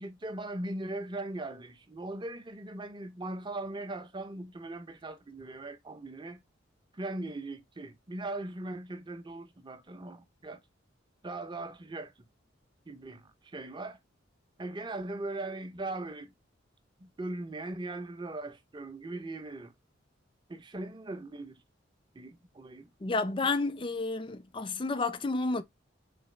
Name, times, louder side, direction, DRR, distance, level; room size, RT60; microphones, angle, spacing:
voice 1, 0.0-6.4 6.9-10.6 11.2-12.1 12.9-14.0 14.6-16.3 17.0-19.7 20.5-21.6 22.1-22.9, right 2 dB, 25° right, 0.6 m, -39 dB
voice 2, 23.0-25.6, left 3 dB, 25° left, 0.4 m, -30 dB
4.2 x 2.8 x 3.1 m
head